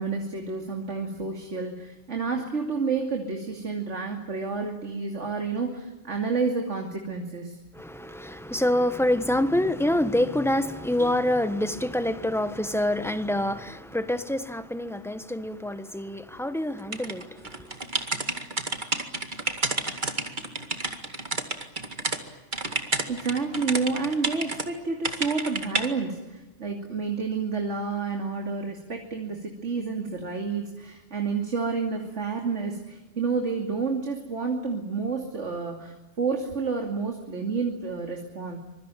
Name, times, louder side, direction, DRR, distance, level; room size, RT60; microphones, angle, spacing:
voice 1, 0.0-7.6 23.1-38.6, right 4 dB, 80° right, 3.0 m, -30 dB
voice 2, 7.7-17.8, left 1 dB, ahead, 1.3 m, -26 dB
sound 1, 16.9-22.2 22.5-24.7 25.0-25.9, right 3 dB, 40° right, 2.3 m, -30 dB
25.5 x 23.0 x 9.1 m
omnidirectional pair, 1.2 m